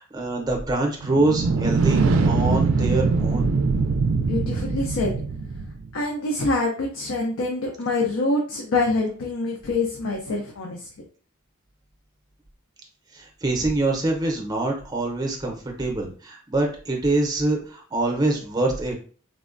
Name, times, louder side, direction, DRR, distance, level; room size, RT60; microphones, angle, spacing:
voice 1, 0.0-3.5 13.1-19.0, right 2 dB, 20° right, 1 dB, 0.6 m, -25 dB
sound 1, 1.0-5.9, right 4 dB, 75° right, 0.4 m, -22 dB
voice 2, 4.2-5.2 5.9-10.9, left 2 dB, 80° left, 0 dB, 0.5 m, -25 dB
3.4 x 2.1 x 2.4 m, 0.42 s
head